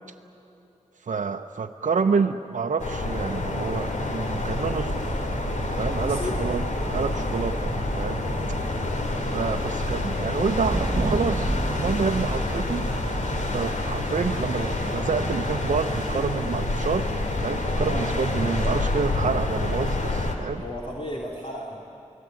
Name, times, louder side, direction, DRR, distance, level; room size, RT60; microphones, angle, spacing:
voice 1, 1.1-5.1 5.8-8.2 9.3-12.9 13.5-17.1 17.4-20.6, right 5 dB, 85° right, 4 dB, 0.8 m, -28 dB
sound 1, 2.8-20.4, left 2 dB, 80° left, 2.7 m, -28 dB
sound 2, 4.7-13.5, right 2 dB, 25° right, 1.4 m, -33 dB
voice 2, 6.0-6.5 17.8-18.1 20.5-21.8, left 1 dB, 45° left, -2 dB, 3.2 m, -35 dB
29.0 x 19.0 x 9.3 m, 2.9 s
wide cardioid pair, 60°, 13 cm